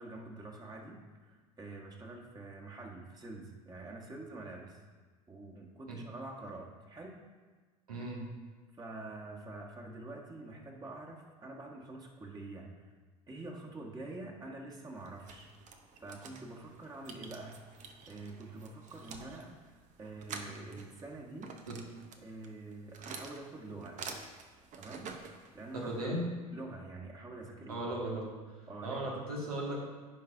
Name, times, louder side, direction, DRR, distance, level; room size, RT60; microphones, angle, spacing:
voice 1, 0.0-4.8 5.3-7.3 8.8-12.9 13.3-15.5 16.0-17.6 18.1-21.6 22.2-24.0 24.8-25.2 25.5-26.0 26.5-28.0 28.7-29.2, right 2 dB, 20° right, -1 dB, 1.7 m, -46 dB
voice 2, 7.9-8.3 21.7-21.8 25.7-26.3 27.7-28.3 28.8-29.8, right 1 dB, 80° right, -3 dB, 1.9 m, -36 dB
sound 1, 15.0-26.0, right 5 dB, 40° right, 1.0 m, -49 dB
15.0 x 5.4 x 2.7 m, 1.4 s
figure-of-eight pair, 70°, 19 cm